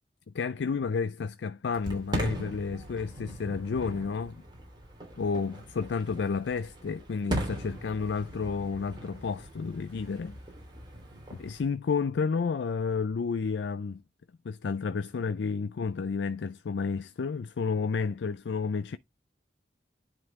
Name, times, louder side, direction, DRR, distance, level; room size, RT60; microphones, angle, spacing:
voice 1, 0.3-4.4 5.2-10.4 11.3-14.0 14.4-19.0, left 5 dB, 85° left, 0.4 m, -31 dB
Fireworks, 1.7-11.6, equal, 25° right, 3.1 m, -39 dB
10.5 x 3.8 x 3.5 m
head